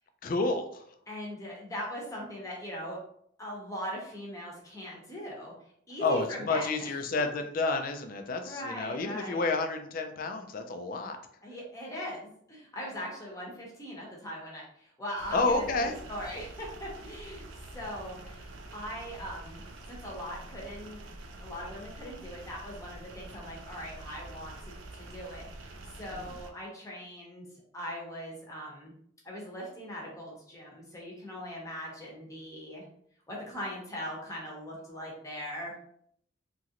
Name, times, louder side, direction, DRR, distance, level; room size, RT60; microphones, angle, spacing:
voice 1, 0.2-0.8 6.0-11.2 15.3-15.9 26.1-26.3, left 3 dB, 45° left, 6 dB, 0.4 m, -30 dB
voice 2, 1.1-3.0 3.4-5.5 5.9-6.9 8.4-9.5 11.4-17.5 17.7-19.6 19.9-21.0 21.4-27.5 27.7-28.9 29.2-32.8 33.3-35.9, equal, 15° left, -3 dB, 0.8 m, -40 dB
sound 1, 15.2-26.5, right 2 dB, 75° right, 0.4 m, -46 dB
3.0 x 2.5 x 2.8 m, 0.67 s
head